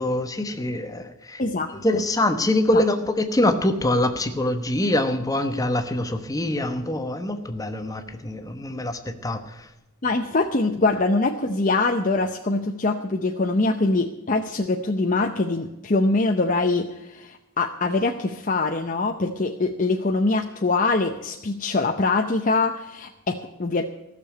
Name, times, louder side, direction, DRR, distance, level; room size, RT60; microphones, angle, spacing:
voice 1, 0.0-1.4 1.7-9.7, left 1 dB, 15° left, 7 dB, 1.0 m, -24 dB
voice 2, 1.4-2.0 2.7-2.8 10.0-23.8, left 3 dB, 35° left, 3 dB, 0.7 m, -23 dB
15.0 x 6.9 x 8.7 m, 0.98 s
head